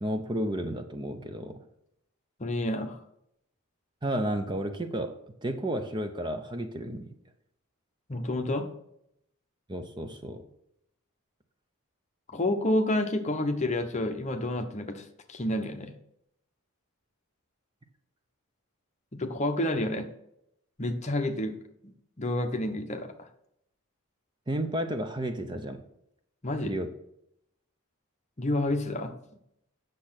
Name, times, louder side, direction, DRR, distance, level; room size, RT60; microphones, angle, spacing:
voice 1, 0.0-1.6 4.0-7.1 9.7-10.5 24.5-25.8 26.6-26.9, right 1 dB, 20° right, 7 dB, 0.6 m, -32 dB
voice 2, 2.4-3.0 8.1-8.7 12.3-15.9 19.1-20.1 20.8-21.6 22.2-23.3 26.4-26.8 28.4-29.1, left 1 dB, 30° left, 6 dB, 0.9 m, -29 dB
8.4 x 6.6 x 5.9 m, 0.77 s
head